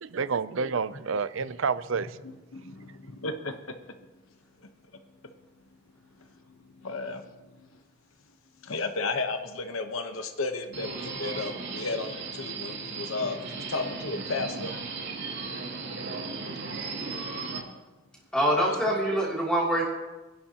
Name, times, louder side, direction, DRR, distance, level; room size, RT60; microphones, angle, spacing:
voice 1, 0.0-2.2, right 5 dB, 70° right, 15 dB, 0.5 m, -29 dB
voice 2, 2.5-3.5 6.8-7.2 8.6-14.7 18.6-18.7, left 3 dB, 85° left, 6 dB, 1.1 m, -33 dB
Subway metro underground, 10.7-17.6, right 4 dB, 55° right, 2.5 m, -36 dB
voice 3, 18.3-19.8, equal, 5° left, -6 dB, 3.0 m, -24 dB
24.0 x 11.0 x 3.0 m, 1.1 s
head